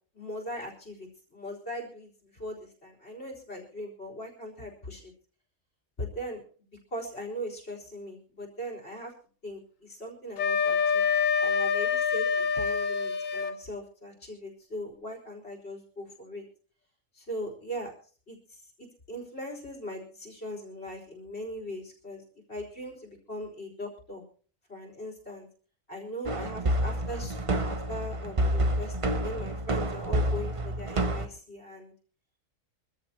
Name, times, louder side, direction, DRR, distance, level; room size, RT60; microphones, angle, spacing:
voice 1, 0.1-5.1 6.0-6.4 6.9-9.1 9.4-11.1 11.4-16.4 17.1-18.0 18.3-22.2 22.5-24.2 24.7-25.5 25.9-31.9, equal, 55° left, 2 dB, 4.4 m, -40 dB
Wind instrument woodwind instrument, 10.4-13.6, left 6 dB, 80° left, 1.6 m, -26 dB
sound 1, 26.3-31.3, right 1 dB, 30° right, 0.8 m, -28 dB
24.5 x 14.0 x 2.9 m, 0.41 s
omnidirectional pair, 1.3 m